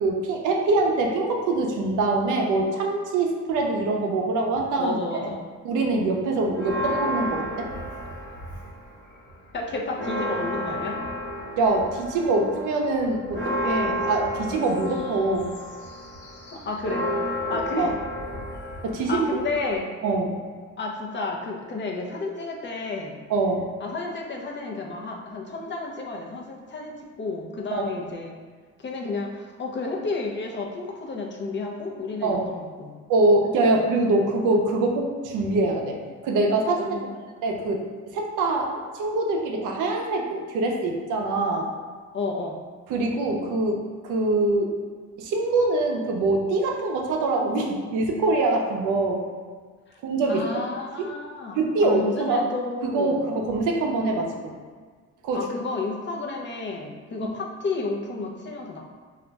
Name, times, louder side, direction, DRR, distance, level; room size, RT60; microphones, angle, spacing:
voice 1, 0.0-5.3 5.6-7.7 11.6-15.5 17.5-17.9 18.8-19.4 20.0-20.4 23.3-23.7 27.7-27.8 32.2-32.5 33.1-36.0 36.2-37.0 37.4-41.7 42.9-44.7 45.2-49.2 50.0-50.6 51.6-52.4 52.8-54.6 55.2-55.5, right 2 dB, 85° right, 1 dB, 0.6 m, -24 dB
voice 2, 4.8-5.4 9.5-11.0 16.5-17.1 17.5-17.9 19.1-19.9 20.8-23.1 23.8-28.3 28.8-32.9 33.7-33.8 36.9-37.1 42.1-42.6 50.3-53.2 55.3-58.8, left 3 dB, 40° left, 0 dB, 0.5 m, -31 dB
Church bell, 6.5-8.9 9.3-9.4 9.7-19.8, left 1 dB, 85° left, 1.1 m, -31 dB
2.4 x 2.2 x 3.9 m, 1.6 s
cardioid pair, 90°, 30 cm